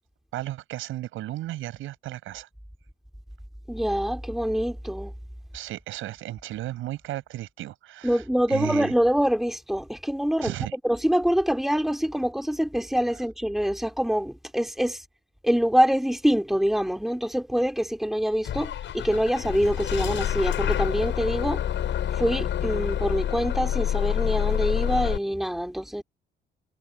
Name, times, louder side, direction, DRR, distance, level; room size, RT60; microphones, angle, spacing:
voice 1, 0.3-2.5 5.5-8.2 8.5-8.9 10.4-10.8, right 15 dB, 90° right, 7.4 m, -34 dB
voice 2, 3.7-5.1 8.0-10.5 10.8-15.0 15.4-21.6 22.1-26.0, equal, ahead, 3.6 m, -25 dB
Bus / Engine starting, 18.4-25.2, left 10 dB, 70° left, 7.4 m, -27 dB
cardioid pair, 90°, 20 cm